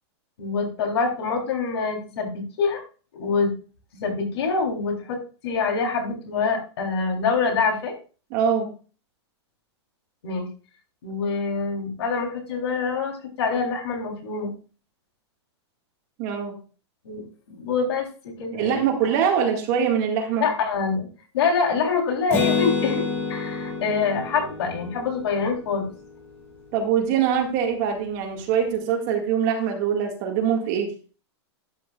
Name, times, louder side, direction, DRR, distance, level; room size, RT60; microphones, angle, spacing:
voice 1, 0.4-2.8 3.2-3.5 4.0-7.9 10.2-10.5 11.0-14.5 17.0-18.9 20.4-21.1 21.3-23.0 23.3-25.9, left 5 dB, 65° left, 2 dB, 3.6 m, -25 dB
voice 2, 8.3-8.7 16.2-16.6 18.5-20.5 26.7-30.9, right 7 dB, 30° right, 2 dB, 2.0 m, -23 dB
Acoustic guitar, 22.3-26.0, left 4 dB, 15° left, 2.4 m, -28 dB
12.5 x 8.8 x 2.4 m, 0.37 s
supercardioid pair, 175°, 15 cm